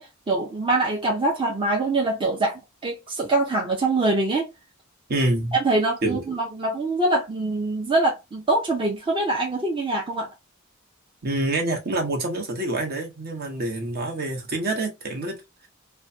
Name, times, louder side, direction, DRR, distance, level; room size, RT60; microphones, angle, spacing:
voice 1, 0.0-4.5 5.5-10.3, right 2 dB, 25° right, 0.7 m, -24 dB
voice 2, 5.1-5.6 6.0-6.3 11.2-15.7, right 2 dB, 50° right, 1.0 m, -27 dB
3.1 x 2.2 x 2.6 m
head